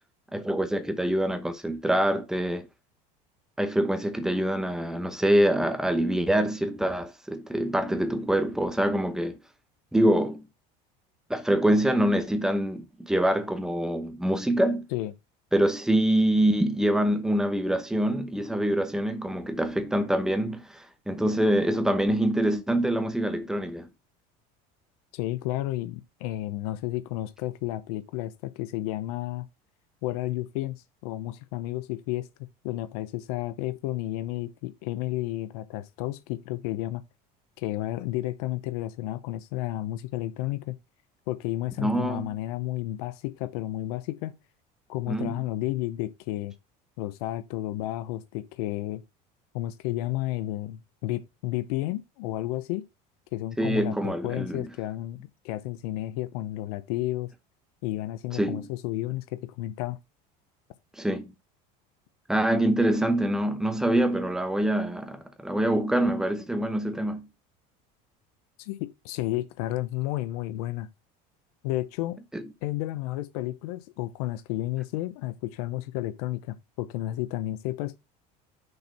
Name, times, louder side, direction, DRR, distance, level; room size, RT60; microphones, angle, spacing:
voice 1, 0.3-2.7 3.6-9.4 9.9-10.4 11.3-14.9 15.5-23.9 41.8-42.3 45.1-45.4 53.6-54.7 58.4-58.7 61.0-61.3 62.3-67.3 72.3-72.4, right 1 dB, 5° right, 0.9 m, -25 dB
voice 2, 25.1-29.5 30.0-32.3 32.6-37.0 37.6-40.8 41.3-44.3 44.9-46.5 47.0-49.0 49.5-52.9 53.3-57.3 57.8-60.0 68.6-70.9 71.6-72.2 72.6-78.0, left 15 dB, 90° left, 0.7 m, -32 dB
6.5 x 4.3 x 5.9 m
cardioid pair, 155°, 19 cm